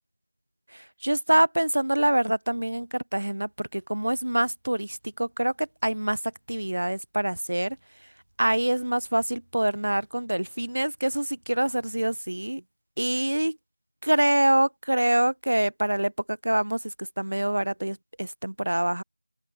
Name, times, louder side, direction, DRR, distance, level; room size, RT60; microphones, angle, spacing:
voice 1, 0.7-6.2 6.5-7.8 8.4-12.6 13.0-13.6 14.0-16.1 16.4-19.0, right 1 dB, 70° right, 2.2 m, -25 dB
open air
figure-of-eight pair, 180°, 0 cm